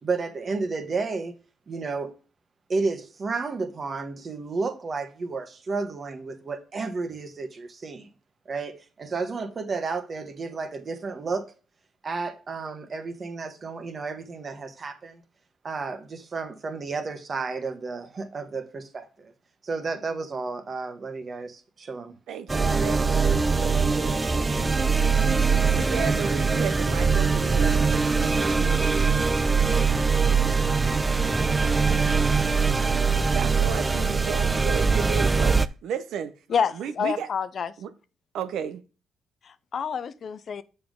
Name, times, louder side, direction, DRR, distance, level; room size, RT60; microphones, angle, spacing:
voice 1, 0.0-1.4 1.7-2.1 2.7-8.1 8.4-11.5 12.0-15.2 15.6-19.3 19.6-22.2, right 4 dB, 40° right, 1.3 m, -32 dB
voice 2, 22.3-24.7 25.7-28.8 33.0-35.6 35.8-36.3 36.8-37.3 37.8-37.9 38.3-38.8, right 8 dB, 80° right, 0.7 m, -34 dB
sound 1, 22.5-35.7, right 5 dB, 20° right, 0.4 m, -22 dB
voice 3, 36.5-37.7 39.7-40.6, left 7 dB, 50° left, 0.5 m, -27 dB
6.9 x 5.4 x 3.7 m
cardioid pair, 90°, 0 cm